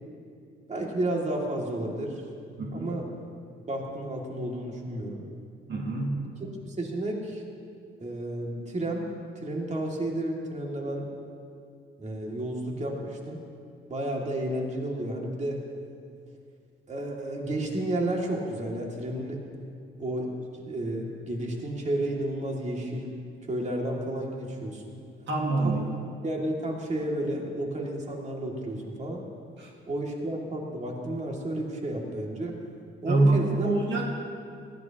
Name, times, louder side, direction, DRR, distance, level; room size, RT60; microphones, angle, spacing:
voice 1, 0.7-2.2 2.7-3.0 3.7-5.2 6.6-7.4 8.0-9.1 9.4-11.1 12.0-13.4 13.9-15.6 16.9-19.6 20.0-20.3 20.6-23.1 23.5-24.9 25.6-25.7 26.2-29.2 29.9-32.6 33.0-33.7, right 1 dB, 35° right, -1 dB, 2.4 m, -31 dB
voice 2, 2.6-3.0 5.7-6.2 25.3-25.9 29.6-29.7 33.1-33.4 33.6-34.1, right 2 dB, 65° right, -2 dB, 1.9 m, -25 dB
19.5 x 15.0 x 2.9 m, 2.4 s
cardioid pair, 90°, 20 cm